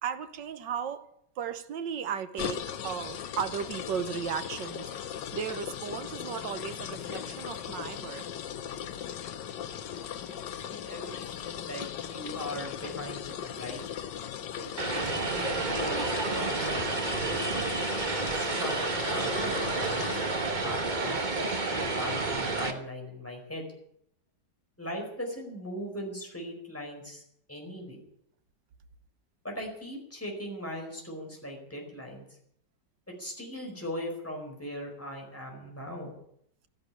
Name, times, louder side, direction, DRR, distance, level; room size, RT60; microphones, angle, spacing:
voice 1, 0.0-1.1 1.4-8.3, right 7 dB, 85° right, 1.7 m, -35 dB
sound 1, 2.4-20.2, left 9 dB, 80° left, 1.5 m, -38 dB
voice 2, 10.6-13.8 14.6-17.4 18.2-23.6 24.8-27.2 27.5-28.0 29.4-32.3 33.1-36.2, equal, 5° left, 4.8 m, -40 dB
Vehicle, 14.8-22.7, right 3 dB, 30° right, 1.4 m, -30 dB
13.0 x 11.0 x 10.0 m
omnidirectional pair, 1.9 m